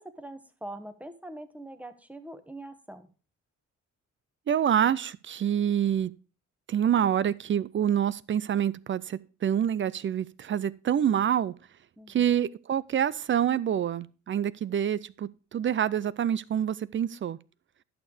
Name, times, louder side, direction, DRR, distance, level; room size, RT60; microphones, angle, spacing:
voice 1, 0.0-3.1 12.0-12.3, right 1 dB, 5° right, 1.2 m, -43 dB
voice 2, 4.5-6.1 6.7-11.5 12.1-17.4, right 9 dB, 40° right, 0.5 m, -27 dB
11.0 x 6.6 x 4.9 m
cardioid pair, 90°, 30 cm